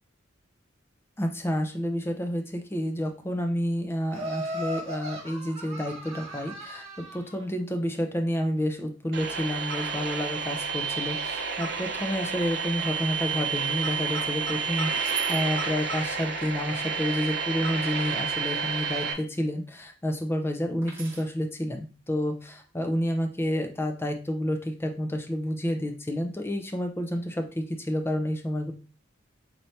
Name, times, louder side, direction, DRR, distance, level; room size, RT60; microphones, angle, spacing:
voice 1, 1.2-28.7, equal, 10° left, 5 dB, 0.5 m, -30 dB
Laughter, 4.1-7.3, equal, 30° right, 1.4 m, -36 dB
sound 1, 9.1-19.1, right 5 dB, 55° right, 0.7 m, -30 dB
sound 2, 14.9-15.4 17.7-18.3 20.8-21.3 22.7-23.1, right 6 dB, 15° right, 1.3 m, -40 dB
4.3 x 3.2 x 2.6 m, 0.35 s
head